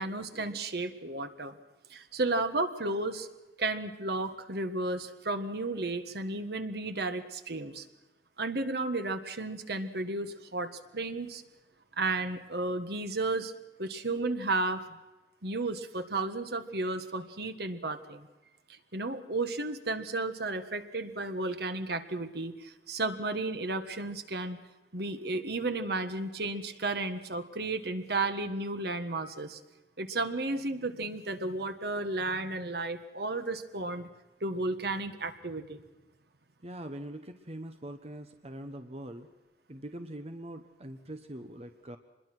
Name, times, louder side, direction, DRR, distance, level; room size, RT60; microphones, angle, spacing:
voice 1, 0.0-1.6 1.9-3.3 3.6-7.8 8.4-11.4 12.0-13.5 13.8-15.0 15.4-18.3 18.9-24.6 24.9-29.6 30.0-34.1 34.4-35.8, right 2 dB, 60° right, 8 dB, 1.7 m, -33 dB
voice 2, 36.6-39.3 39.7-42.0, right 1 dB, 35° right, 7 dB, 1.2 m, -43 dB
25.5 x 21.5 x 6.2 m, 1.1 s
head